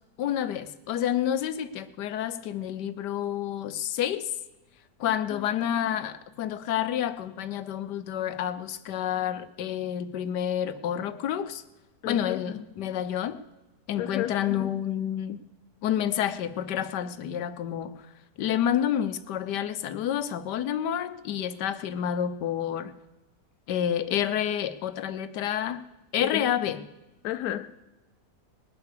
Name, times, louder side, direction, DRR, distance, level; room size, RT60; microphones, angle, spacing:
voice 1, 0.2-4.3 5.0-11.6 12.1-13.4 13.9-15.4 15.8-18.0 18.4-22.9 23.7-25.8 26.1-26.9, left 10 dB, 90° left, 1.4 m, -29 dB
voice 2, 12.0-12.4 14.0-14.4 26.2-26.5 27.2-27.8, left 12 dB, 70° left, 1.1 m, -32 dB
20.0 x 8.2 x 6.7 m
omnidirectional pair, 1.8 m